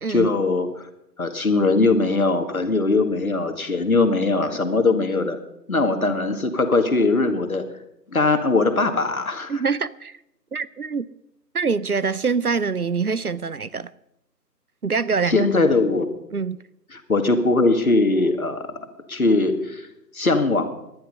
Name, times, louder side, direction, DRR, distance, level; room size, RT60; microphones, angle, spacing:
voice 1, 0.1-0.7 1.2-5.4 5.7-7.6 8.1-9.5 15.3-16.1 16.9-18.8 19.1-19.9 20.1-20.7, left 3 dB, 55° left, 2.0 m, -20 dB
voice 2, 9.5-10.2 10.5-11.1 11.5-13.9 14.8-15.5 16.3-16.6, right 5 dB, 60° right, 0.7 m, -24 dB
19.5 x 11.5 x 5.5 m
figure-of-eight pair, 160°, 50 cm